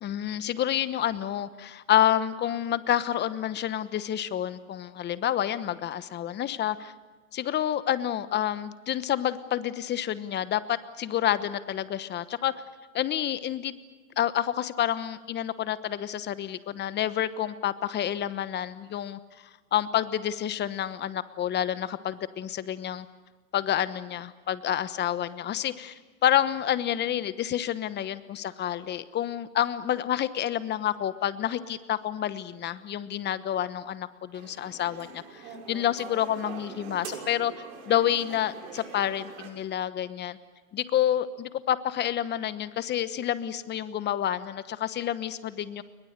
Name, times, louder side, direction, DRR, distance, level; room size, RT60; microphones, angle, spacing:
voice 1, 0.0-6.9 7.3-12.5 12.9-13.7 14.2-23.1 23.5-37.5 37.9-40.4 40.7-45.8, left 11 dB, 25° left, 14 dB, 1.1 m, -29 dB
sound 1, 34.3-39.5, right 6 dB, 65° right, 6.7 m, -43 dB
29.5 x 22.5 x 6.8 m, 1.3 s
hypercardioid pair, 125°, 43 cm